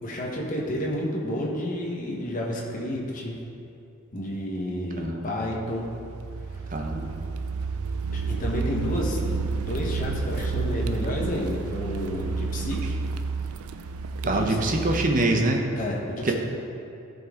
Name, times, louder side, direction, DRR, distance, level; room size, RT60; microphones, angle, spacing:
voice 1, 0.0-3.3 4.1-5.9 8.1-13.0 14.2-14.4 15.8-16.3, left 1 dB, 35° left, -3 dB, 1.3 m, -30 dB
voice 2, 5.0-5.3 6.7-7.1 14.2-15.6 16.2-16.3, right 2 dB, 35° right, 3 dB, 0.8 m, -24 dB
Car, 5.8-15.3, right 4 dB, 80° right, 0.4 m, -30 dB
14.0 x 5.3 x 3.8 m, 2.7 s
head